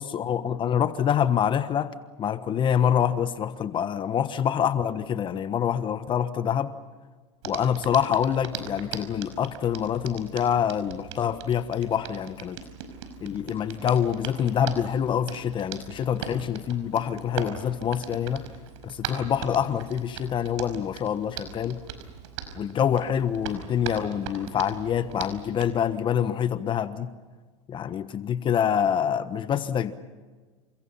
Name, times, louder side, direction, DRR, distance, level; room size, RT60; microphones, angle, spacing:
voice 1, 0.0-1.9 2.2-6.7 7.4-12.6 13.2-18.4 18.8-21.8 22.5-27.1 27.7-29.9, left 8 dB, 30° left, 11 dB, 1.3 m, -26 dB
Hands, 7.4-25.7, right 8 dB, 75° right, 5.3 m, -40 dB
29.5 x 27.5 x 5.7 m, 1.4 s
supercardioid pair, 115°, 16 cm